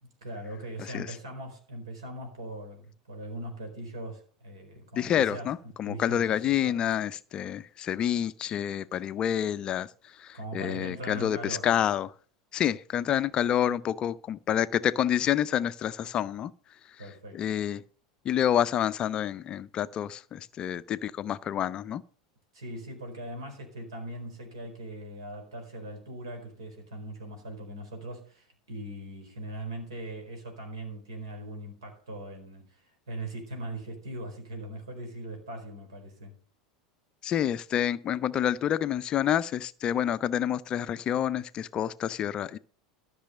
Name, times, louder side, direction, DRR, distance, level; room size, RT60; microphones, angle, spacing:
voice 1, 0.0-6.8 10.3-11.7 17.0-17.6 22.5-36.3, right 1 dB, 70° right, 4.3 m, -40 dB
voice 2, 5.0-9.9 10.2-12.1 12.5-16.5 17.3-17.8 18.3-22.0 37.2-42.6, left 10 dB, 30° left, 0.4 m, -28 dB
13.0 x 6.2 x 6.6 m
figure-of-eight pair, 80°, 3 cm